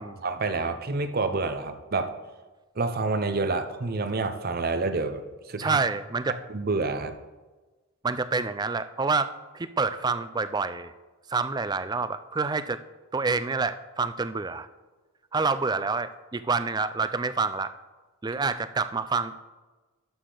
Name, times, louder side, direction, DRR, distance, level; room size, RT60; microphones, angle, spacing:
voice 1, 0.0-2.1 2.8-5.8 6.5-7.1, right 3 dB, 45° right, 9 dB, 0.7 m, -28 dB
voice 2, 5.6-6.4 8.0-10.9 11.3-12.8 13.1-14.7 15.3-17.7 18.2-19.4, right 4 dB, 20° right, 13 dB, 0.4 m, -27 dB
12.5 x 6.5 x 3.9 m, 1.2 s
head